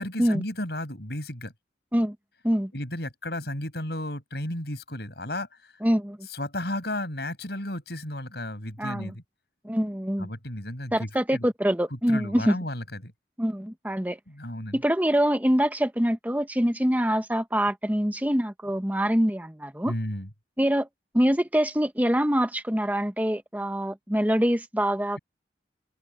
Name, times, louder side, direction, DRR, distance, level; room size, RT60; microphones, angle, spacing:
voice 1, 0.0-1.5 2.7-5.7 6.3-9.2 10.2-11.5 11.9-13.1 14.3-14.8 19.8-20.3, left 1 dB, 65° left, 7.7 m, -33 dB
voice 2, 5.8-6.2 8.8-9.1 9.6-10.3 10.9-12.6 13.4-14.2 14.7-19.9 20.6-20.9 21.1-25.2, equal, 10° right, 1.1 m, -24 dB
head